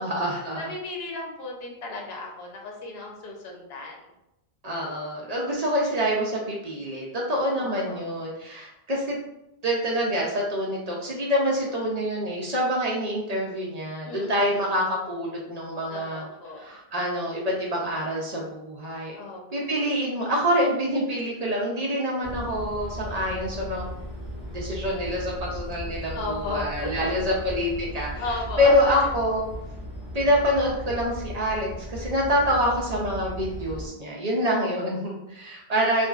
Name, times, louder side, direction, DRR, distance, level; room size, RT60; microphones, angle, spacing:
voice 1, 0.0-0.7 4.6-9.2 9.6-16.2 16.6-19.2 19.5-23.8 24.5-28.3 28.6-29.4 30.1-36.1, equal, 50° right, -3 dB, 0.5 m, -26 dB
voice 2, 0.6-4.0 7.5-8.1 14.0-14.5 15.9-16.7 19.1-19.7 26.1-26.7 27.0-27.4 28.2-29.1, left 2 dB, 80° left, 0 dB, 0.8 m, -35 dB
sound 1, 22.2-33.9, equal, 45° left, 1.1 m, -37 dB
2.9 x 2.4 x 2.3 m, 0.87 s
omnidirectional pair, 1.0 m